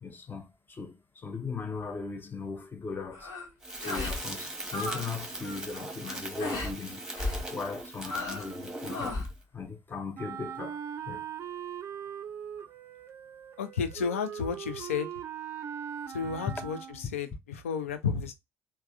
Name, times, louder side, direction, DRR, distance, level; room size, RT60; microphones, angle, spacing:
voice 1, 0.0-3.3 3.8-7.0 7.5-9.1 9.5-10.8 11.1-11.2 16.5-16.6, left 4 dB, 25° left, 0.6 m, -38 dB
sound 1, 3.1-3.5 3.8-4.2 4.5-5.1 5.3-5.7 6.4-6.7 7.2-7.4 8.0-8.5 8.9-9.3, left 2 dB, 60° left, 1.3 m, -35 dB
Crackle, 3.6-9.3, right 2 dB, 10° right, 0.9 m, -40 dB
Wind instrument woodwind instrument, 10.1-17.1, right 9 dB, 40° right, 0.4 m, -40 dB
voice 2, 13.6-15.1 16.1-18.3, left 6 dB, 75° left, 0.4 m, -32 dB
3.3 x 2.1 x 2.3 m
figure-of-eight pair, 50°, 7 cm